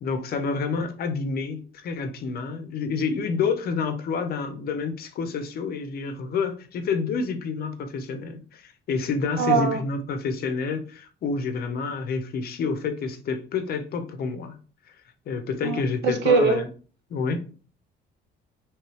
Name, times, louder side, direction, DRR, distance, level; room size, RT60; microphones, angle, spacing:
voice 1, 0.0-14.5 15.3-16.7 17.1-17.4, left 4 dB, 50° left, 0.6 m, -28 dB
voice 2, 9.4-9.8 15.6-16.6, right 5 dB, 65° right, 0.7 m, -22 dB
3.2 x 3.1 x 3.1 m
cardioid pair, 145°, 20 cm